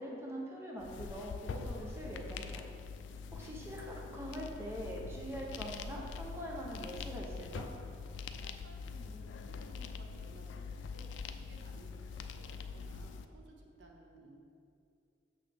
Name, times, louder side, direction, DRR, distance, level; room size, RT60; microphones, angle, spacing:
voice 1, 0.0-2.6 3.3-7.7, equal, 15° right, -3 dB, 0.6 m, -43 dB
sound 1, 0.8-13.3, left 5 dB, 80° left, 0.3 m, -44 dB
voice 2, 8.3-14.4, right 2 dB, 70° right, 1 dB, 0.8 m, -58 dB
6.2 x 5.9 x 3.4 m, 2.5 s
head